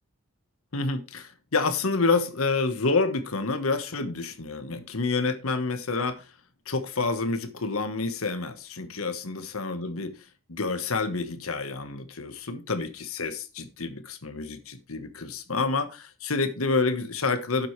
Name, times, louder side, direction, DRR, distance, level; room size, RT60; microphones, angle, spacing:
voice 1, 0.7-6.2 6.7-10.1 10.5-17.7, left 3 dB, 85° left, 1.4 m, -28 dB
11.5 x 7.8 x 3.3 m
head